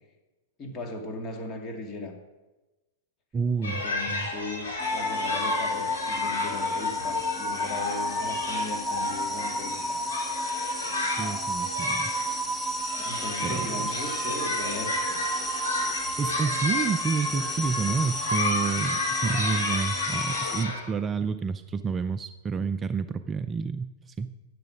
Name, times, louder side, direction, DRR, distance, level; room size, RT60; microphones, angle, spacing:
voice 1, 0.6-2.2 3.6-10.0 13.0-15.2, left 2 dB, 30° left, 3 dB, 2.3 m, -38 dB
voice 2, 3.3-3.8 4.1-4.3 11.2-12.1 13.4-14.3 15.7-24.3, right 5 dB, 20° right, 10 dB, 0.4 m, -30 dB
sound 1, 3.6-20.8, left 2 dB, 75° left, 4.3 m, -33 dB
sound 2, 4.8-20.6, left 1 dB, 5° left, 0.9 m, -31 dB
10.5 x 7.5 x 6.3 m, 1.1 s
hypercardioid pair, 105°, 0 cm